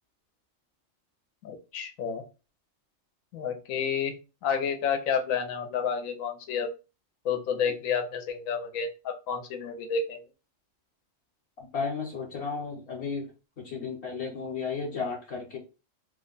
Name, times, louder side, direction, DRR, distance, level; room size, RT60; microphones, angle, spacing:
voice 1, 1.4-2.2 3.3-4.1 4.4-6.7 7.2-10.2, left 6 dB, 85° left, 6 dB, 1.1 m, -30 dB
voice 2, 11.6-13.3 13.6-15.6, left 5 dB, 60° left, -1 dB, 1.0 m, -34 dB
3.1 x 2.1 x 3.8 m, 0.30 s
omnidirectional pair, 1.4 m